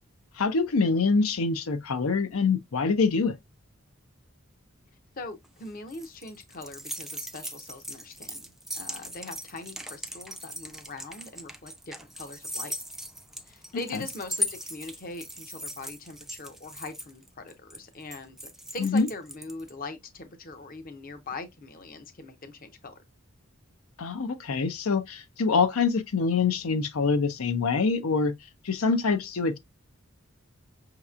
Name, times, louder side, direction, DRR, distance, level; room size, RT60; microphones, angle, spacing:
voice 1, 0.4-3.4 18.8-19.1 24.0-28.3 28.6-29.6, left 4 dB, 90° left, 0.6 m, -25 dB
voice 2, 5.2-8.5 8.7-12.7 13.5-23.0, left 3 dB, 40° left, 0.7 m, -41 dB
sound 1, 5.4-19.7, equal, ahead, 0.3 m, -38 dB
5.7 x 2.9 x 2.4 m
head